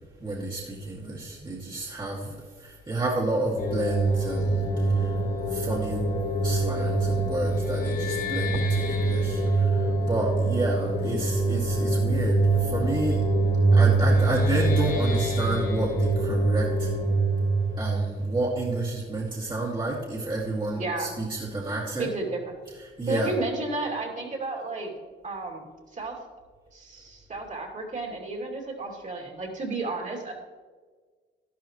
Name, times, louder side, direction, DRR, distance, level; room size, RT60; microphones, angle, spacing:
voice 1, 0.2-5.2 5.5-6.1 6.4-13.3 13.7-16.9 17.8-22.1 23.0-23.3, right 2 dB, 25° right, -4 dB, 2.1 m, -30 dB
sound 1, 3.6-19.0, right 2 dB, 45° left, 1.8 m, -24 dB
voice 2, 20.8-21.1 22.0-22.4 23.1-24.9 25.2-25.6 25.9-26.2 26.7-30.3, right 3 dB, 40° right, 0 dB, 2.6 m, -32 dB
12.0 x 11.5 x 3.1 m, 1.5 s
cardioid pair, 90°, 20 cm